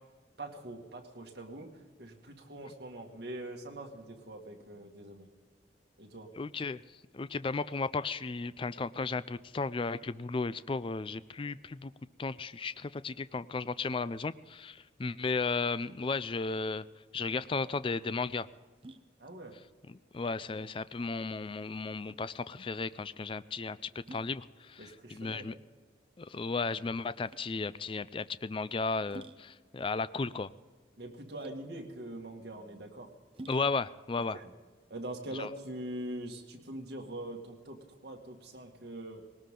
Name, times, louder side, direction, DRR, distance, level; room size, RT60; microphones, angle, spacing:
voice 1, 0.4-5.3 6.0-6.3 19.2-19.6 24.8-25.5 31.0-33.1 34.2-34.5 34.9-39.2, right 1 dB, 60° right, 1 dB, 2.1 m, -43 dB
voice 2, 6.4-6.8 7.1-11.9 12.2-16.8 17.1-18.5 19.9-23.8 24.1-25.5 26.2-30.5 33.5-34.4 35.4-35.5, left 4 dB, 30° left, 16 dB, 0.4 m, -34 dB
sound 1, 18.7-35.8, right 2 dB, 30° right, 0.7 m, -55 dB
19.5 x 18.5 x 3.8 m, 1.5 s
head